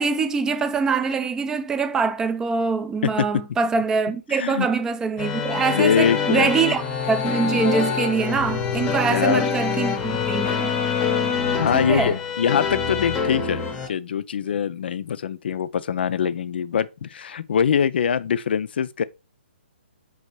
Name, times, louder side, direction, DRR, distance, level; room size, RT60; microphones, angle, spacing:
voice 1, 0.0-6.8 7.1-10.7 11.7-12.1, right 5 dB, 10° right, 0.3 m, -24 dB
voice 2, 3.0-3.4 4.3-4.7 5.7-6.5 9.1-9.5 11.6-19.0, left 7 dB, 60° left, 0.4 m, -23 dB
sound 1, 5.2-13.9, left 6 dB, 15° left, 0.8 m, -25 dB
5.4 x 3.2 x 3.1 m
hypercardioid pair, 145°, 6 cm